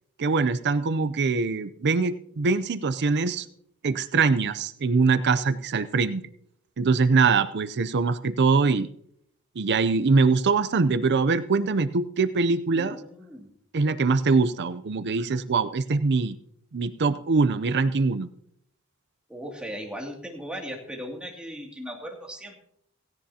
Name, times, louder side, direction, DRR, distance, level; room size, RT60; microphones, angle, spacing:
voice 1, 0.2-3.5 3.8-6.2 6.8-8.9 9.6-13.0 13.7-16.4 16.7-18.3, right 4 dB, 50° right, 13 dB, 0.5 m, -23 dB
voice 2, 12.7-13.5 19.3-22.6, equal, 5° right, 0 dB, 2.5 m, -37 dB
17.0 x 16.5 x 2.8 m, 0.70 s
head